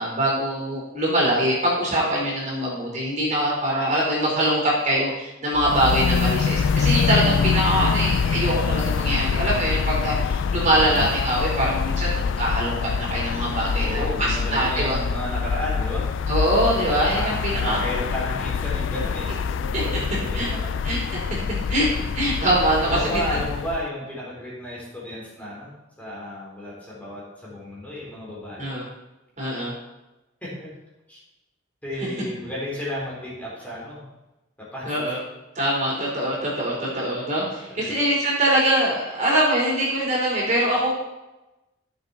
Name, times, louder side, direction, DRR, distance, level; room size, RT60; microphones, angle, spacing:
voice 1, 0.0-14.0 14.5-15.0 16.3-17.3 17.6-17.8 19.7-19.8 20.3-20.5 20.8-21.2 21.7-21.9 22.1-23.2 28.6-28.8 29.4-29.7 34.8-35.2 35.6-40.9, right 1 dB, 35° right, -5 dB, 4.3 m, -23 dB
sound 1, 5.6-23.9, left 6 dB, 65° left, 0.3 m, -25 dB
voice 2, 10.7-11.1 13.8-16.1 17.1-20.7 22.8-28.7 30.4-30.7 31.1-31.2 31.8-34.0 34.7-34.9 35.9-36.0 36.9-37.0 37.7-38.0, left 1 dB, 10° left, -7 dB, 4.1 m, -33 dB
15.5 x 7.5 x 4.3 m, 1.0 s
head